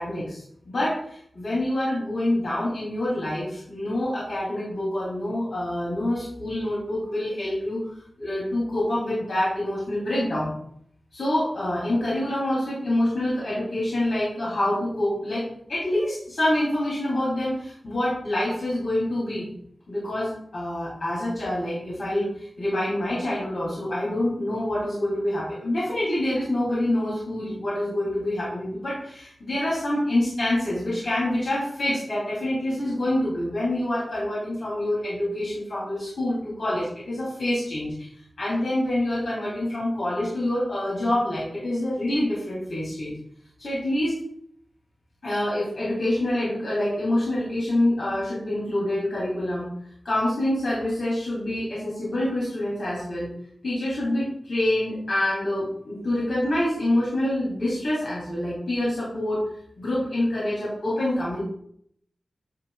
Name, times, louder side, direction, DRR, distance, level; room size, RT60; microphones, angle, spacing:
voice 1, 0.0-7.9 8.2-10.5 11.1-19.5 19.9-38.1 38.4-43.2 43.6-44.2 45.2-49.7 50.0-53.3 53.6-59.4 59.8-61.4, left 1 dB, 85° left, -8 dB, 3.5 m, -26 dB
9.9 x 6.9 x 2.5 m, 0.68 s
wide cardioid pair, 90°, 0 cm